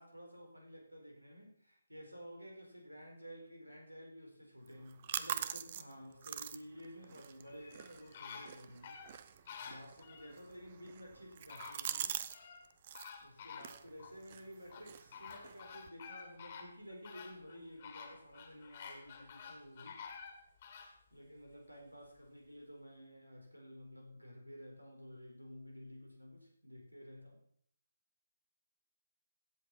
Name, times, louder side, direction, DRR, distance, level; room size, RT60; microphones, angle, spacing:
voice 1, 0.0-9.0 9.6-12.3 13.2-20.0 21.1-27.4, equal, 90° right, 1 dB, 4.5 m, -53 dB
sound 1, 4.7-12.4 12.6-13.1 13.6-15.9, right 9 dB, 35° right, 0.6 m, -45 dB
sound 2, 7.5-10.3 11.1-11.2 11.5-12.6 12.9-14.2 14.7-21.0 21.4-21.5, left 6 dB, 35° left, 2.0 m, -51 dB
16.0 x 8.0 x 4.3 m, 0.64 s
figure-of-eight pair, 145°, 0 cm